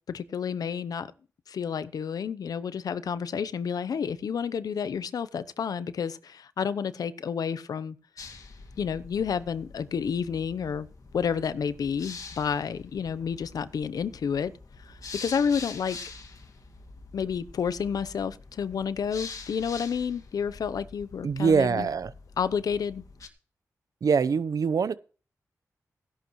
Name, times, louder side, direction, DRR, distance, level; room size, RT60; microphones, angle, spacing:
voice 1, 0.1-1.1 1.5-8.0 8.8-10.9 11.1-14.5 14.8-16.0 17.1-21.9 22.4-23.0, left 7 dB, 85° left, 0.7 m, -30 dB
sound 1, 8.2-23.3, left 4 dB, 65° left, 2.0 m, -45 dB
voice 2, 21.2-22.1 24.0-25.0, right 5 dB, 70° right, 0.8 m, -24 dB
15.5 x 11.5 x 3.1 m
cardioid pair, 65°, 6 cm